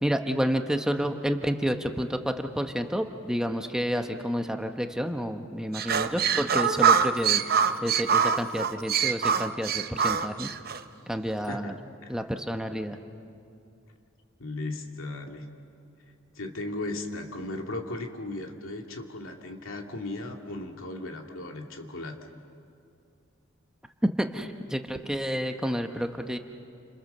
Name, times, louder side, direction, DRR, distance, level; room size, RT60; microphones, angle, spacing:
voice 1, 0.0-10.5 11.1-11.8 12.1-13.0 24.2-26.4, equal, 5° right, 5 dB, 0.9 m, -30 dB
sound 1, 5.7-10.8, right 7 dB, 50° right, 0.8 m, -24 dB
voice 2, 14.4-15.5 16.4-22.3, left 2 dB, 90° left, 2 dB, 2.4 m, -36 dB
30.0 x 27.5 x 6.7 m, 2.6 s
head